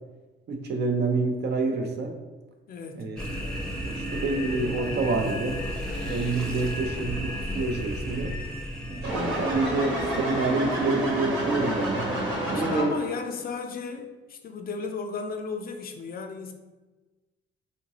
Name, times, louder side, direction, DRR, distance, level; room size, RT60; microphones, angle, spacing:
voice 1, 0.5-2.1 3.0-3.2 3.8-5.6 6.1-8.3 8.9-12.1 12.5-12.9, right 3 dB, 60° right, 3 dB, 0.6 m, -28 dB
voice 2, 2.7-3.0 12.5-16.5, left 5 dB, 50° left, 5 dB, 0.4 m, -35 dB
sound 1, 3.2-11.1, equal, 5° left, 0.6 m, -34 dB
sound 2, 9.0-13.2, right 1 dB, 80° right, 1.2 m, -29 dB
3.7 x 2.5 x 2.9 m, 1.2 s
cardioid pair, 90°, 20 cm